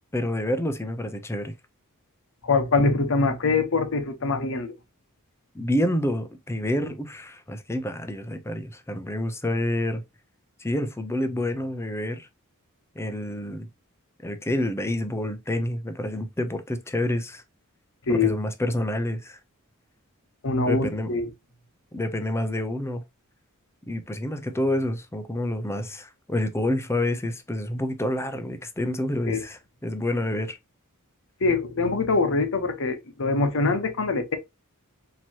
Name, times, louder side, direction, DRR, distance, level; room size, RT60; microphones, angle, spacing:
voice 1, 0.1-1.5 5.5-10.0 10.6-12.3 13.0-13.7 14.2-17.4 18.1-19.4 20.7-21.1 21.9-23.0 23.9-30.6, left 1 dB, 10° left, 0.5 m, -28 dB
voice 2, 2.4-4.7 18.1-18.4 20.4-21.3 29.3-29.4 31.4-34.4, left 3 dB, 60° left, 0.9 m, -24 dB
4.5 x 2.9 x 2.8 m
head